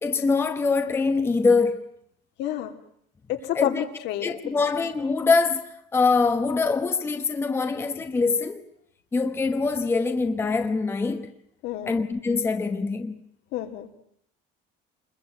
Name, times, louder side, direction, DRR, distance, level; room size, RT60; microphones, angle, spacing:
voice 1, 0.0-2.0 3.5-3.8 4.2-8.6 9.1-11.3 11.9-13.1, left 4 dB, 10° left, 1.0 m, -24 dB
voice 2, 2.4-2.7 3.3-4.3 11.6-12.0 13.5-13.9, left 11 dB, 65° left, 2.9 m, -29 dB
27.0 x 21.5 x 9.1 m
cardioid pair, 180°, 19 cm